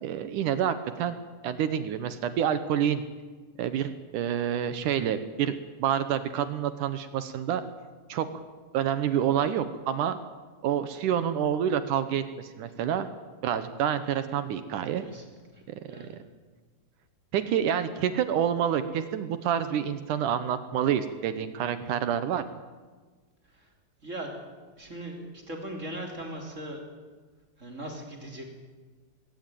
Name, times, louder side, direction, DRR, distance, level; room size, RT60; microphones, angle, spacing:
voice 1, 0.0-1.2 1.4-3.0 3.6-7.6 8.1-8.4 8.7-10.2 10.6-13.1 13.4-15.0 15.7-15.8 16.1-16.2 17.3-22.4, right 9 dB, 70° right, 11 dB, 2.1 m, -28 dB
voice 2, 24.0-24.3 24.8-26.8 27.6-28.4, right 1 dB, 20° right, 2 dB, 3.1 m, -38 dB
20.5 x 17.5 x 9.1 m, 1.4 s
omnidirectional pair, 4.6 m